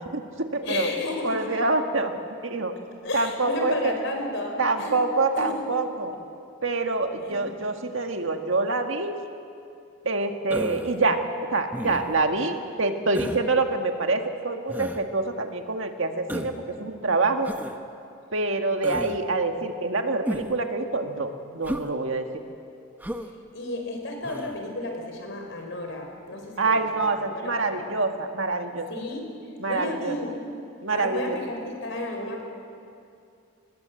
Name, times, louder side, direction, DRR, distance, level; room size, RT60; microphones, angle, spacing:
voice 1, 0.0-0.9 1.2-2.1 2.4-2.7 3.1-3.9 4.6-6.1 6.6-9.2 10.1-11.2 11.5-17.5 18.3-22.3 26.6-28.9 29.6-30.2 30.8-31.4, right 3 dB, 65° right, 5 dB, 1.7 m, -26 dB
voice 2, 0.6-1.6 3.0-5.0 5.3-5.6 7.2-7.5 23.1-23.2 23.5-26.9 27.2-27.8 28.9-29.3 29.6-30.3 30.9-32.4, left 2 dB, 60° left, 3 dB, 4.6 m, -32 dB
Human voice, 10.5-11.0 11.7-12.2 13.1-13.5 14.7-15.0 16.3-16.6 17.4-17.8 18.8-19.2 20.2-20.6 21.6-21.9 23.0-23.3 24.2-24.6, equal, 10° right, 1.0 m, -33 dB
23.0 x 20.5 x 8.2 m, 2.5 s
head